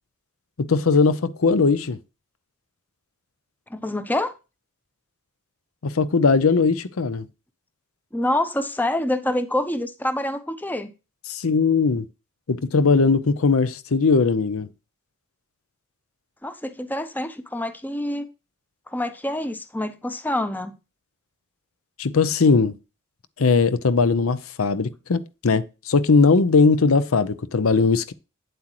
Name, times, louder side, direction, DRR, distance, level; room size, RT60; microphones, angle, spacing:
voice 1, 0.6-2.0 5.8-7.3 11.3-12.1 12.5-14.7 22.0-22.7 23.4-28.1, left 4 dB, 70° left, 0.7 m, -19 dB
voice 2, 3.7-4.3 8.1-10.9 16.4-18.3 18.9-20.8, left 1 dB, 10° left, 0.6 m, -26 dB
8.8 x 7.8 x 3.0 m
head